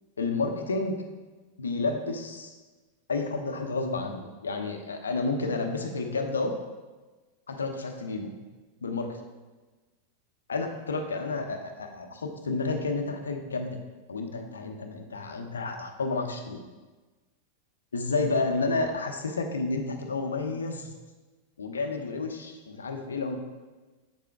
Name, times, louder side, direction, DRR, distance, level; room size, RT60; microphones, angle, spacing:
voice 1, 0.2-1.0 1.6-2.5 3.1-6.6 7.5-8.3 8.8-9.2 10.5-13.8 14.1-16.6 17.9-20.9 21.6-23.4, left 3 dB, 70° left, 5 dB, 0.8 m, -30 dB
7.8 x 6.8 x 3.5 m, 1.2 s
figure-of-eight pair, 90°, 0 cm